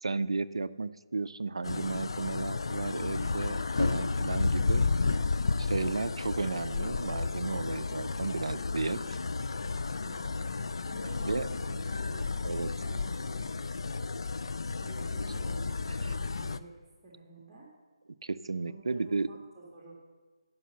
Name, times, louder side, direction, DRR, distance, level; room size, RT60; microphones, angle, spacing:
voice 1, 0.0-4.8 5.6-9.2 11.2-11.5 12.4-12.7 15.5-15.6 15.9-16.1 18.2-19.3, right 3 dB, 75° right, 15 dB, 0.4 m, -34 dB
sound 1, 1.6-16.6, left 4 dB, 65° left, 0.4 m, -32 dB
voice 2, 10.0-10.3 10.9-12.3 12.8-13.4 14.8-17.7 18.6-19.9, right 2 dB, 15° right, -6 dB, 1.9 m, -51 dB
9.9 x 5.5 x 6.6 m, 1.4 s
figure-of-eight pair, 150°, 3 cm